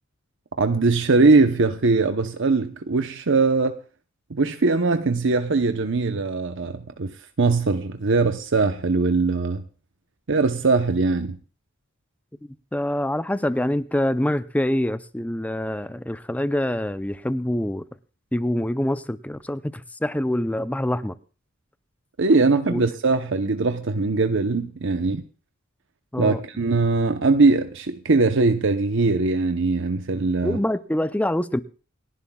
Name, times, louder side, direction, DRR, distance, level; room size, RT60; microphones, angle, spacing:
voice 1, 0.6-3.8 4.3-9.6 10.3-11.4 22.2-25.2 26.2-30.6, right 3 dB, 65° right, 0.8 m, -21 dB
voice 2, 12.7-17.9 18.3-21.2 22.7-22.8 26.1-26.4 30.4-31.6, left 1 dB, 5° left, 0.5 m, -25 dB
29.0 x 11.0 x 2.3 m
head